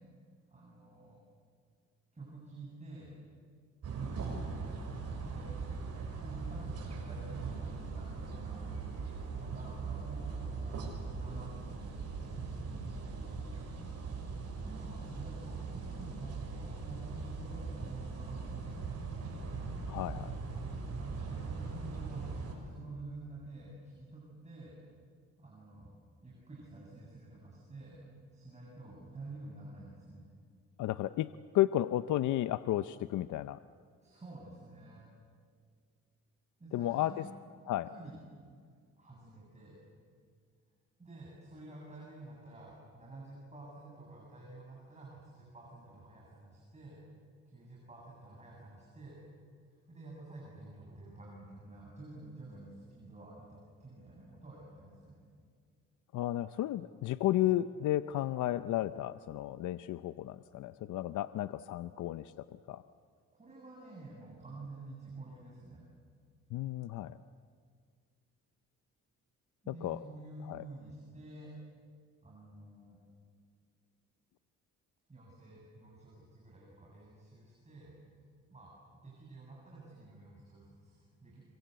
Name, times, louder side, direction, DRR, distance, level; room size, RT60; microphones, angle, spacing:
voice 1, 0.5-1.2 2.1-3.2 4.0-4.4 5.2-5.5 6.1-8.7 9.4-13.4 14.7-18.9 21.0-22.2 22.6-24.8 25.4-25.9 26.2-28.0 28.3-30.2 34.0-35.0 36.6-37.3 37.9-38.2 39.0-39.8 41.0-47.0 47.5-49.2 49.9-55.2 63.3-65.8 69.6-71.5 72.2-73.0 75.1-77.9 78.5-78.7 79.0-81.4, right 2 dB, 20° right, -4 dB, 7.9 m, -50 dB
sound 1, 3.8-22.5, right 4 dB, 55° right, 6.5 m, -40 dB
voice 2, 19.9-20.3 30.8-33.6 36.7-37.2 37.7-37.9 56.1-62.8 66.5-67.2 69.7-70.0 70.5-70.6, left 14 dB, 75° left, 13 dB, 0.6 m, -33 dB
26.0 x 24.0 x 8.1 m, 2.1 s
cardioid pair, 90°, 30 cm